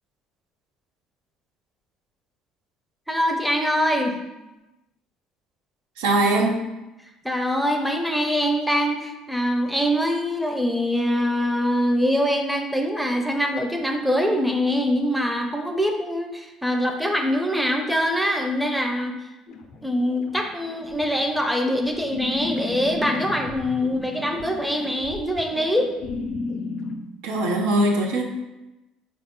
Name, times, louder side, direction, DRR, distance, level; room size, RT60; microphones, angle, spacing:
voice 1, 3.1-4.2 7.2-19.2 19.8-25.9, equal, ahead, 3 dB, 0.5 m, -23 dB
voice 2, 6.0-6.7 27.2-28.2, right 1 dB, 85° right, 2 dB, 0.5 m, -21 dB
sound 1, 19.5-27.0, left 3 dB, 60° left, 0.4 m, -34 dB
3.7 x 2.4 x 3.6 m, 1.0 s
supercardioid pair, 80°, 0 cm